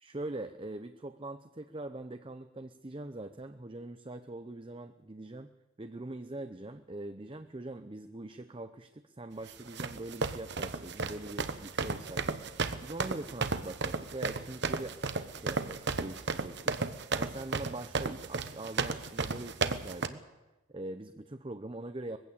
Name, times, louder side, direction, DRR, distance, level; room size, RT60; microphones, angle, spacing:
voice 1, 0.0-5.5 5.8-15.0 15.2-16.7 17.1-20.2 20.7-22.2, right 2 dB, 25° right, 9 dB, 0.7 m, -42 dB
sound 1, 9.5-20.1, right 4 dB, 55° right, 1.1 m, -34 dB
21.0 x 15.5 x 8.5 m, 1.0 s
head